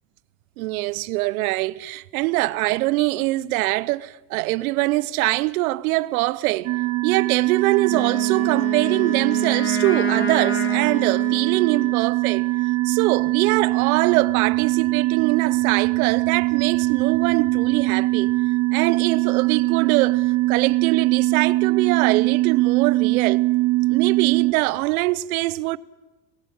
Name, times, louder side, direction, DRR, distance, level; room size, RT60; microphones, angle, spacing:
voice 1, 0.6-6.7 7.0-12.4 12.8-18.4 18.7-23.5 23.9-25.8, right 19 dB, 75° right, 0.9 m, -23 dB
sound 1, 6.6-24.5, right 20 dB, 40° right, 0.8 m, -22 dB
Wind instrument woodwind instrument, 7.8-12.0, left 4 dB, 30° left, 3.3 m, -31 dB
21.5 x 16.0 x 9.7 m
supercardioid pair, 105°, 43 cm